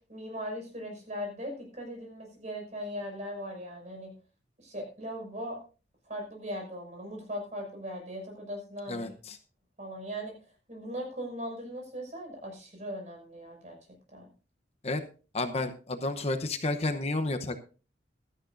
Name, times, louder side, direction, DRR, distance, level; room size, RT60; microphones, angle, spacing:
voice 1, 0.0-4.1 4.6-5.6 6.0-9.1 9.8-10.3 10.7-13.8 14.1-14.3, equal, 40° right, 2 dB, 5.8 m, -39 dB
voice 2, 8.9-9.4 14.8-15.0 15.3-17.6, left 2 dB, 35° left, 7 dB, 0.9 m, -31 dB
16.0 x 13.0 x 2.6 m, 0.35 s
head